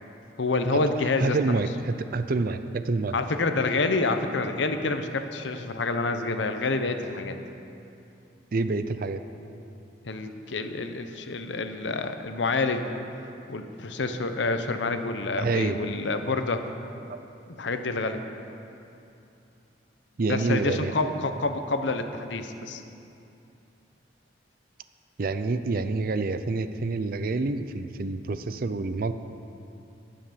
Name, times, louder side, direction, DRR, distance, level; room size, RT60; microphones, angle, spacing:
voice 1, 0.4-1.6 3.1-7.3 10.0-12.9 13.5-16.7 17.5-18.2 20.3-22.8, left 3 dB, 85° left, 7 dB, 0.8 m, -28 dB
voice 2, 1.2-3.1 8.5-9.2 15.4-15.8 17.1-17.2 20.2-20.9 25.2-29.1, right 3 dB, 50° right, 10 dB, 0.5 m, -27 dB
17.0 x 5.8 x 6.9 m, 2.7 s
head